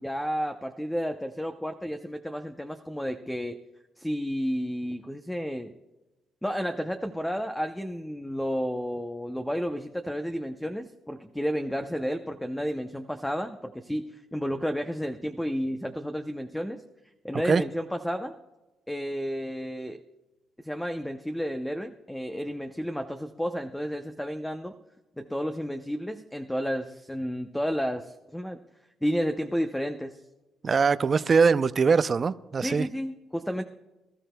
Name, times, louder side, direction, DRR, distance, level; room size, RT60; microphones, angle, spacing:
voice 1, 0.0-3.6 4.0-5.7 6.4-16.8 17.2-18.3 18.9-20.0 20.6-24.7 25.2-28.6 29.0-30.2 32.6-33.6, equal, 5° left, 6 dB, 0.7 m, -31 dB
voice 2, 30.6-32.9, right 5 dB, 40° right, 14 dB, 0.5 m, -22 dB
23.5 x 13.5 x 2.3 m, 1.1 s
cardioid pair, 90°, 0 cm